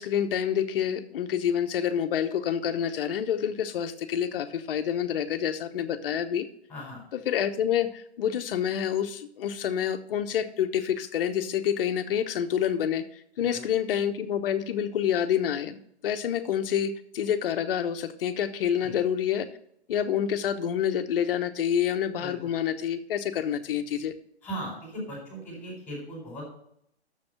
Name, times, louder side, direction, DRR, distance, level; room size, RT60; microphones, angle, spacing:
voice 1, 0.0-6.5 7.1-19.5 19.9-24.1, left 9 dB, 55° left, 9 dB, 1.0 m, -28 dB
voice 2, 6.7-7.0 13.4-13.6 18.8-19.0 22.2-22.4 24.4-26.4, right 1 dB, 5° left, -2 dB, 4.4 m, -38 dB
7.0 x 6.8 x 6.5 m, 0.72 s
hypercardioid pair, 130°, 33 cm